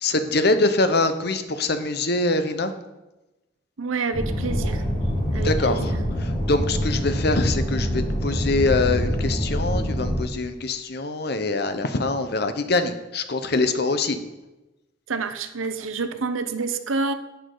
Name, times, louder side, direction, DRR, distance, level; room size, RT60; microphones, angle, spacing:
voice 1, 0.0-2.7 5.4-14.2, left 2 dB, 55° left, 9 dB, 0.8 m, -24 dB
voice 2, 3.8-4.8 5.3-5.8 15.1-17.1, right 4 dB, 85° right, 10 dB, 0.8 m, -28 dB
sound 1, 4.1-10.2, equal, 25° left, 3.8 m, -25 dB
11.5 x 8.7 x 3.9 m, 1.0 s
head